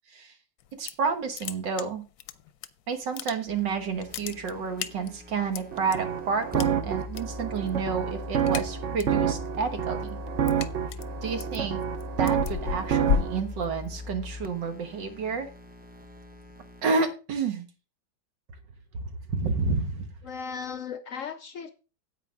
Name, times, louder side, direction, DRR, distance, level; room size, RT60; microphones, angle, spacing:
sound 1, 0.6-1.1 1.3-2.7 3.0-3.7 4.0-6.0 6.6-7.2 7.5-7.8 8.1-9.2 9.6-14.1, left 9 dB, 90° left, 1.3 m, -33 dB
voice 1, 0.8-2.0 2.9-10.2 11.2-11.8 12.2-15.5 16.8-17.7 19.3-20.1, right 5 dB, 85° right, 7 dB, 2.0 m, -30 dB
sound 2, 3.5-16.8, left 3 dB, 10° right, 0.5 m, -41 dB
sound 3, 5.7-13.4, right 9 dB, 50° right, 1.0 m, -29 dB
voice 2, 20.2-21.7, left 6 dB, 65° left, 11 dB, 0.8 m, -36 dB
9.9 x 8.3 x 3.7 m, 0.32 s
omnidirectional pair, 1.9 m